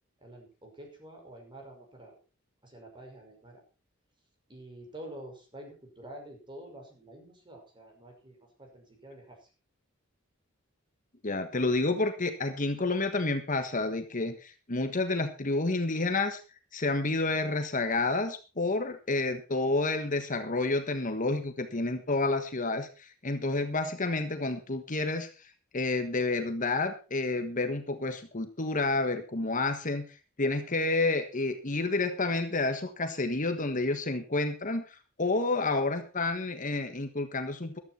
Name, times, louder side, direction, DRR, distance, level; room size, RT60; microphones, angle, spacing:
voice 1, 0.2-2.2 2.6-3.6 4.5-9.5, right 1 dB, 25° right, 2 dB, 5.5 m, -48 dB
voice 2, 11.2-16.4 16.7-25.3 25.7-30.0 30.4-37.8, left 3 dB, 40° left, 7 dB, 1.4 m, -29 dB
14.5 x 12.5 x 4.3 m, 0.33 s
head